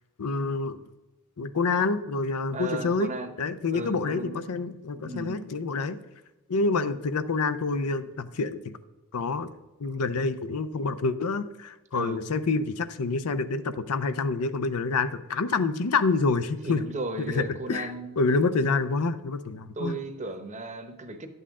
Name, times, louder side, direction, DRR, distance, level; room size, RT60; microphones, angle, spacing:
voice 1, 0.2-0.8 1.4-3.1 3.4-6.0 6.5-8.7 9.1-9.5 9.8-16.8 17.3-20.0, left 4 dB, 80° left, 12 dB, 0.6 m, -27 dB
voice 2, 2.5-3.3 3.7-4.4 4.9-5.4 11.9-12.2 16.6-18.2 19.8-21.3, right 2 dB, 35° right, 7 dB, 0.9 m, -35 dB
11.0 x 8.0 x 3.7 m, 1.1 s
head